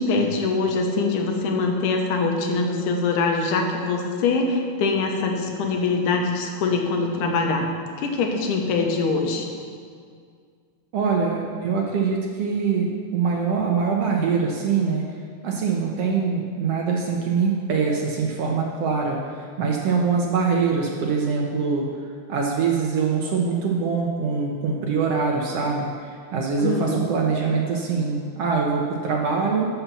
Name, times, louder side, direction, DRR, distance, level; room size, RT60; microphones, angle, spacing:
voice 1, 0.0-7.7 8.0-9.5 26.6-27.0, left 3 dB, 80° left, 2 dB, 2.6 m, -23 dB
voice 2, 10.9-15.0 15.4-21.9 22.3-29.7, right 5 dB, 65° right, 0 dB, 1.7 m, -23 dB
12.0 x 5.9 x 7.0 m, 2.1 s
omnidirectional pair, 3.6 m